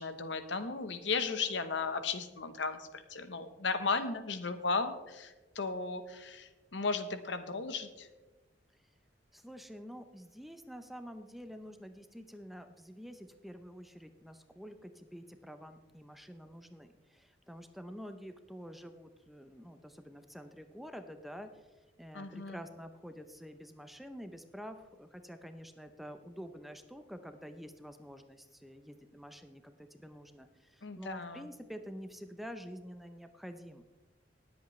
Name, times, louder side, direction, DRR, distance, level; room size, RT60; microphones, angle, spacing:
voice 1, 0.0-8.1 22.1-22.6 30.8-31.5, left 4 dB, 70° left, 9 dB, 1.0 m, -35 dB
voice 2, 9.3-21.7 22.0-33.8, equal, ahead, 8 dB, 0.5 m, -48 dB
20.0 x 8.2 x 3.2 m, 1.2 s
head